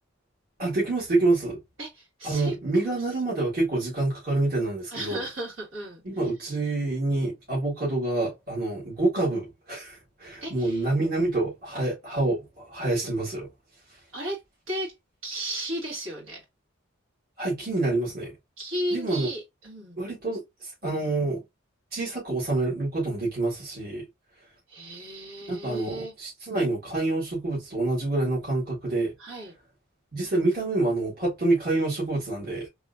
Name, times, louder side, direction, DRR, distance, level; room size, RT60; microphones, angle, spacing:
voice 1, 0.6-1.6 2.2-5.2 6.1-13.5 17.4-18.3 18.9-19.3 20.0-21.4 21.9-24.1 25.5-29.1 30.1-32.7, right 2 dB, 50° right, 2.0 m, -27 dB
voice 2, 1.8-2.5 4.9-6.0 10.4-10.9 14.1-14.4 14.7-14.9 15.2-16.4 18.6-20.0 24.7-26.1 29.2-29.5, right 1 dB, 80° right, 2.6 m, -34 dB
3.6 x 3.3 x 2.5 m
head